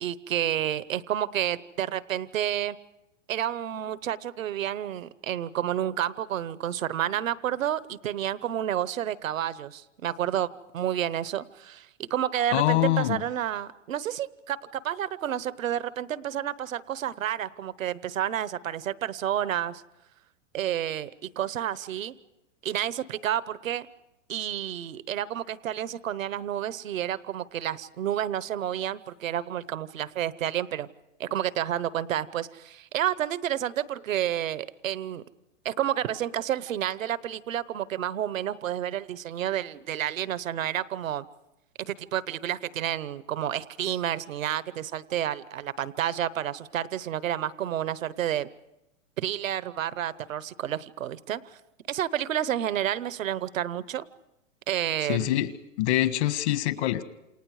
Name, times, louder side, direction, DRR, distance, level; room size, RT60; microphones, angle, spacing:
voice 1, 0.0-2.8 3.3-19.8 20.5-22.1 22.6-23.9 24.3-30.9 31.2-35.2 35.6-41.2 41.8-48.5 49.2-51.6 51.9-54.1 54.7-55.4, right 11 dB, 90° right, 16 dB, 1.0 m, -30 dB
voice 2, 12.5-13.2 55.1-55.5 55.8-57.0, left 14 dB, 55° left, 11 dB, 1.7 m, -24 dB
28.5 x 28.0 x 4.8 m, 0.92 s
hypercardioid pair, 130°, 39 cm